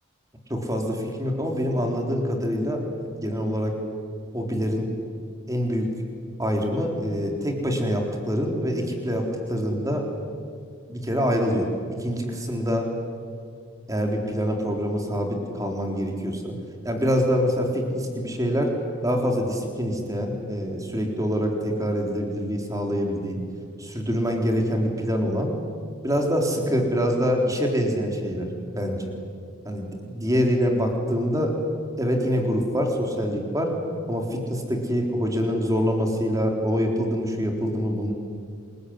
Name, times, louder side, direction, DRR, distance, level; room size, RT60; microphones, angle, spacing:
voice 1, 0.5-3.7 4.3-4.9 5.5-5.9 6.4-10.0 10.9-11.7 12.0-12.9 13.9-16.6 16.8-18.7 19.0-23.4 23.8-25.5 26.0-28.5 28.7-29.1 29.6-31.5 32.0-33.7 34.1-38.1, equal, 15° right, 2 dB, 4.0 m, -25 dB
27.5 x 21.5 x 9.8 m, 2.3 s
head